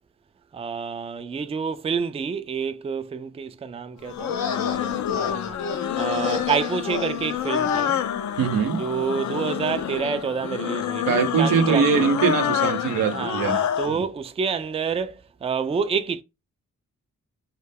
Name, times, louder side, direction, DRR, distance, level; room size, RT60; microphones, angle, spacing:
voice 1, 0.5-5.6 6.0-8.0 8.8-12.1 13.1-16.2, right 6 dB, 20° right, 0.3 m, -28 dB
sound 1, 4.0-14.0, left 10 dB, 60° left, 0.5 m, -27 dB
sound 2, 4.1-7.9, left 5 dB, 90° left, 0.8 m, -31 dB
voice 2, 8.4-8.8 11.1-14.0, right 6 dB, 85° right, 0.7 m, -22 dB
2.3 x 2.1 x 3.4 m
supercardioid pair, 45°, 33 cm